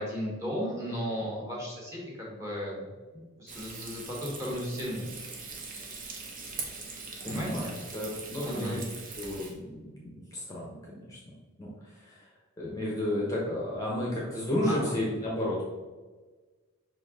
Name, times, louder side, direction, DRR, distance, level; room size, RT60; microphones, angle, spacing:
voice 1, 0.0-2.9 3.4-5.1 7.2-7.7 8.4-8.8 14.6-14.9, equal, 15° right, -4 dB, 1.5 m, -35 dB
Frying (food), 3.5-9.5, right 3 dB, 40° right, 0.9 m, -41 dB
voice 2, 7.2-8.8 9.2-15.6, left 1 dB, 15° left, -4 dB, 1.0 m, -33 dB
5.8 x 4.6 x 3.7 m, 1.3 s
head